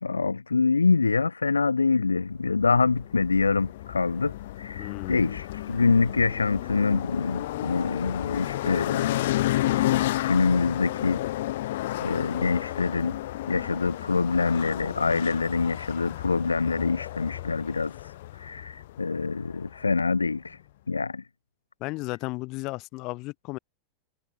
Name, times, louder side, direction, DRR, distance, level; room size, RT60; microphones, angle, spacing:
voice 1, 0.0-9.1 9.7-11.2 12.0-13.2 13.5-20.6 20.9-21.2, left 4 dB, 85° left, 0.3 m, -25 dB
sound 1, 2.6-20.0, left 15 dB, 60° left, 0.7 m, -32 dB
voice 2, 4.8-5.4 21.8-23.6, left 22 dB, 45° left, 1.2 m, -34 dB
figure-of-eight pair, 90°, 0 cm